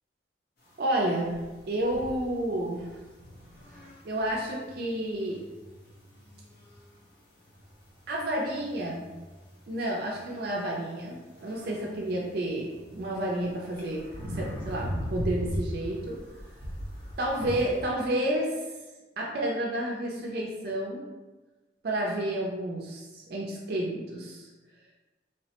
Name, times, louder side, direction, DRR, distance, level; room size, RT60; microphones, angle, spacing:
sound 1, 0.6-17.9, equal, 50° left, 0.8 m, -40 dB
voice 1, 0.8-1.3 1.7-2.9 4.0-5.4 8.1-9.1 9.7-16.2 17.2-18.5 19.2-21.1 21.8-24.5, right 1 dB, 55° right, -2 dB, 0.4 m, -30 dB
3.1 x 2.0 x 2.8 m, 1.2 s
head